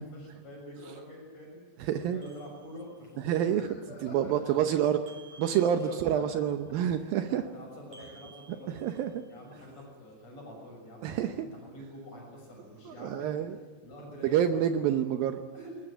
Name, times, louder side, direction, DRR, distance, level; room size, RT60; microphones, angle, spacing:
voice 1, 0.0-1.6 1.9-4.4 5.1-6.5 6.9-13.3 13.8-14.6 15.5-15.8, equal, 35° left, -1 dB, 7.3 m, -47 dB
voice 2, 1.8-2.2 3.2-3.7 4.0-5.0 5.4-7.5 8.7-9.2 11.0-11.5 12.9-13.6 14.2-15.4, right 9 dB, 80° right, 9 dB, 2.1 m, -28 dB
sound 1, 2.2-3.2 5.1-6.3 7.9-9.4, right 4 dB, 50° right, 5.1 m, -56 dB
20.5 x 20.5 x 8.9 m, 1.4 s
omnidirectional pair, 5.2 m